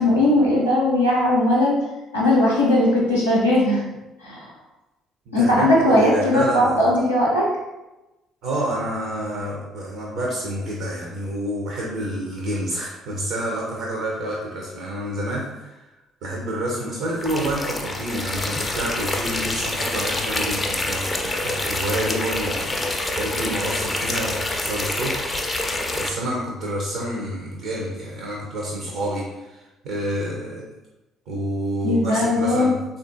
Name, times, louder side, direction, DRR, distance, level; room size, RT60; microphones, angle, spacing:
voice 1, 0.0-1.8 2.1-3.8 4.2-4.4 5.3-7.5 31.8-32.7, left 1 dB, 90° left, -8 dB, 0.5 m, -18 dB
voice 2, 5.3-6.8 8.4-15.8 16.2-25.4 25.9-30.6 31.3-32.8, right 1 dB, 60° right, -2 dB, 0.5 m, -28 dB
sound 1, 17.2-26.1, left 2 dB, 20° left, 0.4 m, -26 dB
3.5 x 2.5 x 2.4 m, 1.0 s
figure-of-eight pair, 50°, 0 cm